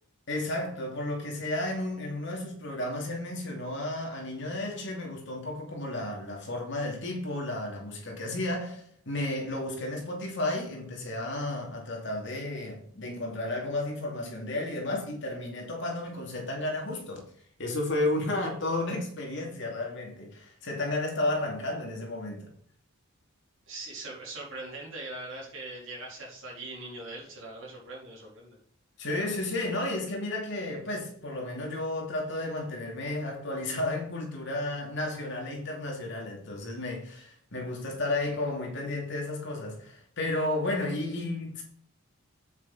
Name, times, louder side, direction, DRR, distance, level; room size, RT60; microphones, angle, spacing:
voice 1, 0.3-17.2 17.6-22.5 29.0-41.6, left 2 dB, 55° left, 2.6 m, -32 dB
voice 2, 23.7-28.6, right 2 dB, 55° right, 3.8 m, -41 dB
8.3 x 7.1 x 4.1 m
head